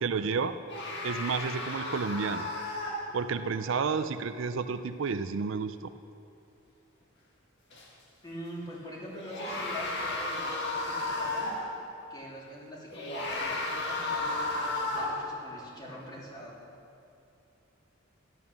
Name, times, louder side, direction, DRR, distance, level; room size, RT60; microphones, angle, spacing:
voice 1, 0.0-0.6 1.0-2.5 3.1-5.9, right 5 dB, 65° right, 11 dB, 0.5 m, -31 dB
sound 1, 0.7-3.5 7.7-7.8 9.1-11.8 12.9-15.4, left 2 dB, 60° left, 1.9 m, -33 dB
voice 2, 8.2-11.7 12.1-16.6, equal, 20° left, -4 dB, 2.9 m, -44 dB
12.5 x 11.0 x 7.0 m, 2.8 s
head